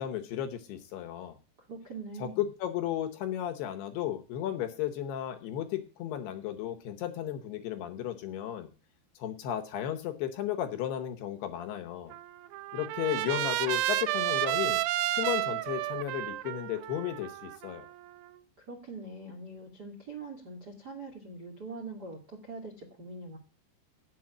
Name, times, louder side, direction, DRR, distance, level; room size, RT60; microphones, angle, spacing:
voice 1, 0.0-1.4 2.2-8.7 9.2-12.1 12.7-14.8 15.1-17.9, left 11 dB, 75° left, 7 dB, 2.7 m, -34 dB
voice 2, 1.7-2.5 18.6-23.4, right 3 dB, 50° right, 2 dB, 1.2 m, -43 dB
Trumpet, 12.1-18.3, right 15 dB, 85° right, 2.4 m, -32 dB
9.2 x 7.7 x 7.1 m, 0.35 s
omnidirectional pair, 5.4 m